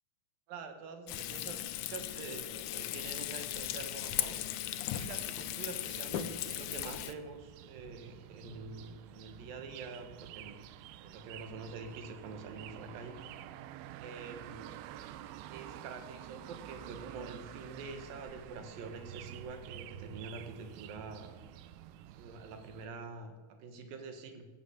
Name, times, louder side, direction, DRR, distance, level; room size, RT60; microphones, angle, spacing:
voice 1, 0.5-4.4 4.9-10.6 11.0-13.3 14.0-14.7 15.5-21.3 22.2-24.5, right 4 dB, 75° right, 6 dB, 3.3 m, -46 dB
Frying (food), 1.1-7.1, left 13 dB, 80° left, 1.6 m, -37 dB
sound 1, 3.5-22.9, right 12 dB, 90° right, 2.5 m, -50 dB
16.0 x 9.5 x 8.1 m, 1.4 s
omnidirectional pair, 4.2 m